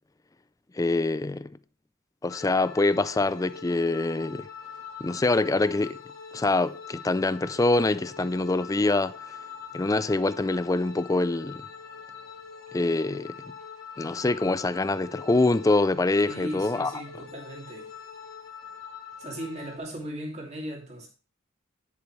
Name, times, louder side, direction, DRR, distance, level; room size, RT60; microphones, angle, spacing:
voice 1, 0.7-1.5 2.2-4.5 5.0-6.0 6.3-9.1 9.7-11.7 12.7-13.4 14.0-17.0, left 2 dB, 15° left, 0.4 m, -25 dB
sound 1, 2.3-19.8, left 6 dB, 80° left, 2.1 m, -43 dB
voice 2, 16.3-17.9 19.2-21.1, right 1 dB, 35° right, 2.7 m, -37 dB
9.7 x 8.2 x 3.2 m
head